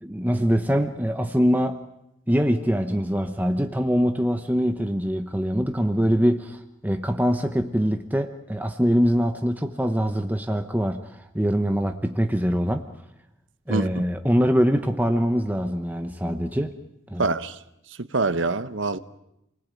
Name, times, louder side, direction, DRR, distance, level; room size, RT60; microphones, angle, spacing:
voice 1, 0.0-1.8 2.3-12.8 13.7-16.7 17.1-17.3, equal, 10° right, 0.9 m, -23 dB
voice 2, 13.7-14.0 17.2-17.6 18.0-19.0, right 3 dB, 65° right, 1.0 m, -25 dB
29.0 x 20.0 x 9.2 m
head